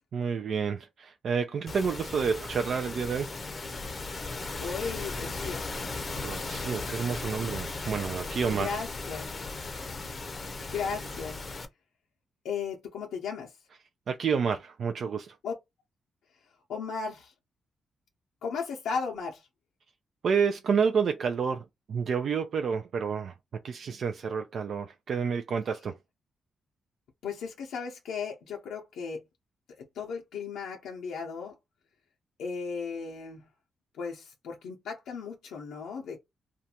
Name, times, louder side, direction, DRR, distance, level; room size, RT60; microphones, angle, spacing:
voice 1, 0.1-3.3 6.2-8.8 14.1-15.4 20.2-23.3 23.6-26.0, right 6 dB, 65° right, 0.3 m, -29 dB
sound 1, 1.7-11.7, left 3 dB, 40° left, 0.5 m, -37 dB
voice 2, 4.6-5.6 8.5-9.3 10.7-11.4 12.4-13.5 15.4-15.5 16.7-17.3 18.4-19.5 27.2-29.2 30.0-31.5 32.4-33.4 34.0-36.2, left 5 dB, 85° left, 0.5 m, -35 dB
2.4 x 2.2 x 2.7 m
cardioid pair, 60°, 0 cm